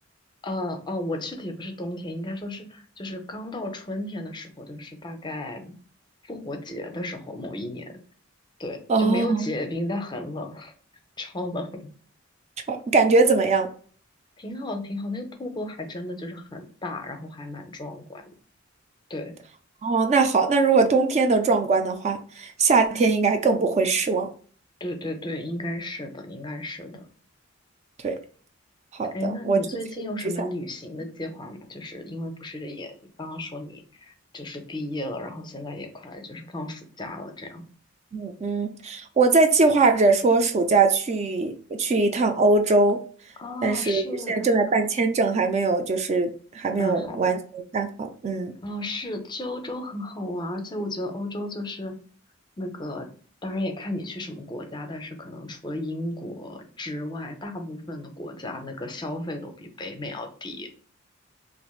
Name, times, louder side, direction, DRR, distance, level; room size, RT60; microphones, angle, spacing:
voice 1, 0.4-5.7 6.2-7.9 8.6-10.7 11.2-11.9 14.4-18.2 19.1-19.3 24.8-27.0 29.1-37.6 43.4-44.5 46.8-47.3 48.6-51.9 52.6-53.1 53.4-60.7, left 1 dB, 25° left, 6 dB, 0.6 m, -34 dB
voice 2, 8.9-9.5 12.7-13.7 19.8-24.3 28.0-28.2 29.0-29.6 30.2-30.5 38.1-43.0 43.6-48.6, right 3 dB, 35° right, 6 dB, 0.4 m, -21 dB
4.3 x 2.5 x 2.3 m, 0.44 s
head